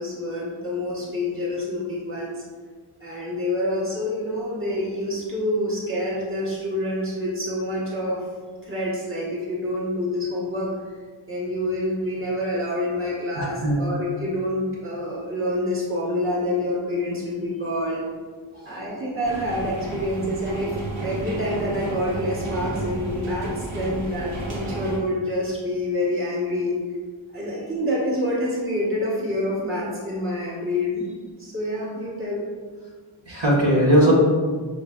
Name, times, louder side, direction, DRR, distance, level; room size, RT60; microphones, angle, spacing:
voice 1, 0.0-2.4 3.0-8.2 8.6-10.7 11.3-18.0 18.6-20.8 21.0-26.7 27.3-31.1 31.4-32.4, left 1 dB, 25° right, -6 dB, 1.2 m, -27 dB
voice 2, 13.3-13.9 18.5-18.6 33.3-34.1, right 1 dB, 55° right, -6 dB, 1.2 m, -19 dB
sound 1, 19.2-25.0, right 2 dB, 85° right, 1.0 m, -32 dB
6.1 x 3.2 x 2.3 m, 1.6 s
wide cardioid pair, 70°, 49 cm